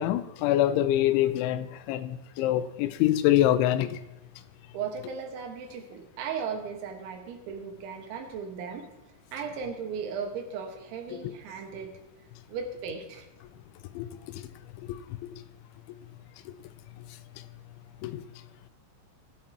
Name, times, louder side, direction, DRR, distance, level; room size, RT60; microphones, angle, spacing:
voice 1, 0.0-4.0 14.0-14.1 14.3-14.4 14.9-15.4 16.5-16.6 18.0-18.2, left 13 dB, 85° left, 2.9 m, -25 dB
voice 2, 4.7-8.9 9.3-12.0 12.5-13.2, right 6 dB, 75° right, 3.8 m, -36 dB
24.0 x 8.6 x 2.9 m
omnidirectional pair, 5.5 m